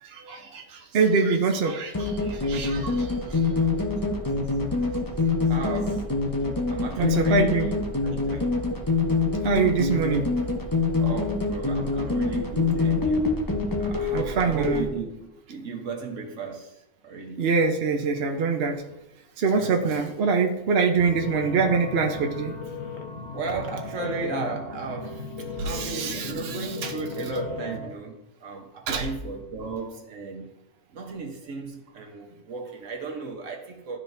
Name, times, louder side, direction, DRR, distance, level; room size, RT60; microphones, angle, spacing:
voice 1, 0.0-3.4 7.0-7.7 9.4-10.3 14.1-14.8 17.4-18.8 19.4-22.5 25.6-26.6 26.8-26.9 28.9-29.1, right 5 dB, 55° right, 0.9 m, -24 dB
sound 1, 1.9-14.9, left 4 dB, 20° left, 0.7 m, -25 dB
voice 2, 5.5-6.3 6.7-8.6 11.0-17.4 19.5-20.0 23.3-30.5 30.9-34.0, right 4 dB, 75° right, 1.4 m, -35 dB
sound 2, 21.0-27.9, left 3 dB, 60° left, 1.2 m, -36 dB
12.0 x 4.4 x 2.6 m
omnidirectional pair, 1.3 m